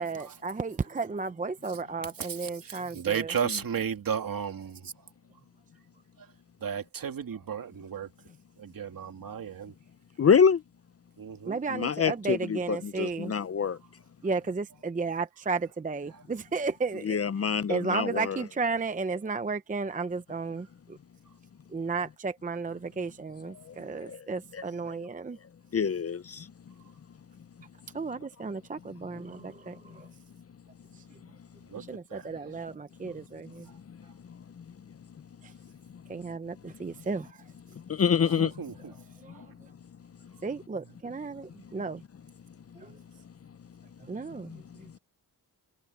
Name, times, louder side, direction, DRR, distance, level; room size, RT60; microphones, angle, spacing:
voice 1, 0.0-3.3 11.5-13.3 14.2-17.2 17.7-21.0 21.7-25.4 27.9-30.1 31.0-31.1 31.8-33.7 35.4-35.5 36.1-37.4 39.2-39.4 40.4-42.0 42.8-43.0 44.0-45.0, right 4 dB, 20° right, 0.6 m, -34 dB
voice 2, 1.7-5.1 6.2-8.3 8.6-9.8 11.2-11.6 13.0-13.1 13.7-13.8 16.1-16.2 21.3-21.4 31.6-31.8 32.1-32.6 33.7-34.1 38.2-39.5, right 7 dB, 60° right, 2.6 m, -36 dB
voice 3, 10.2-10.6 11.7-13.8 17.0-18.4 24.1-24.2 24.5-24.6 25.7-26.4 37.9-38.5, left 6 dB, 40° left, 0.6 m, -25 dB
wide cardioid pair, 165°, 39 cm